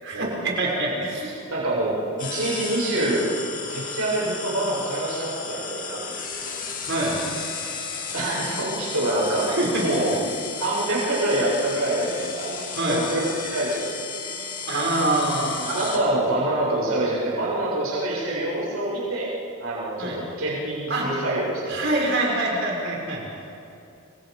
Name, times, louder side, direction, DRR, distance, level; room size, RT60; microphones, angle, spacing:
voice 1, 0.0-1.4 6.9-7.2 9.5-9.8 12.7-13.0 14.7-15.7 20.0-20.2 20.9-21.1 21.7-23.2, right 2 dB, 55° right, -2 dB, 6.8 m, -25 dB
voice 2, 1.5-3.3 3.7-6.0 6.4-6.6 8.1-9.5 9.8-10.1 10.6-14.2 15.7-19.3 19.6-21.8, right 1 dB, 85° right, -6 dB, 7.8 m, -26 dB
sound 1, 2.2-16.0, left 5 dB, 40° left, 2.7 m, -34 dB
30.0 x 25.5 x 5.4 m, 2.6 s
head